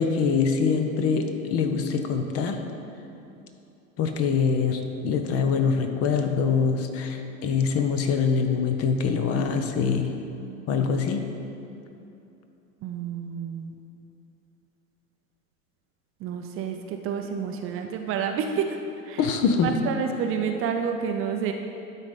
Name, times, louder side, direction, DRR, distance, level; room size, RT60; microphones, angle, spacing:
voice 1, 0.0-2.6 4.0-10.1 10.7-11.3 19.2-19.8, left 5 dB, 35° left, 6 dB, 0.8 m, -24 dB
voice 2, 12.8-13.7 16.2-18.8 19.0-19.2 19.5-21.5, right 7 dB, 30° right, 4 dB, 0.6 m, -29 dB
11.5 x 4.1 x 5.2 m, 2.8 s
figure-of-eight pair, 80°, 41 cm